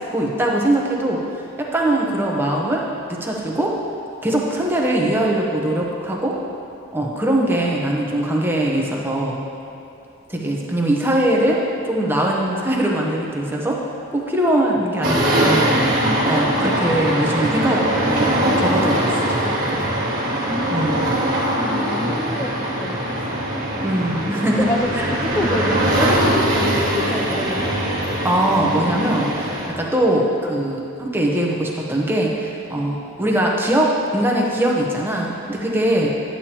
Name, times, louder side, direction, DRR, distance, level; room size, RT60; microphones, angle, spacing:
voice 1, 0.1-1.2 1.6-2.8 3.2-3.7 4.2-6.4 6.9-9.4 10.3-11.6 11.8-13.8 14.1-15.7 16.2-19.4 19.7-19.8 20.7-21.1 23.8-24.7 24.9-25.1 28.2-36.1, right 1 dB, 10° right, -2 dB, 0.9 m, -21 dB
sound 1, 15.0-29.7, right 1 dB, 45° right, 1.6 m, -21 dB
voice 2, 20.4-21.1 21.5-23.0 23.8-24.0 24.6-27.7, left 1 dB, 15° left, -2 dB, 0.4 m, -27 dB
10.5 x 8.6 x 2.9 m, 2.7 s
head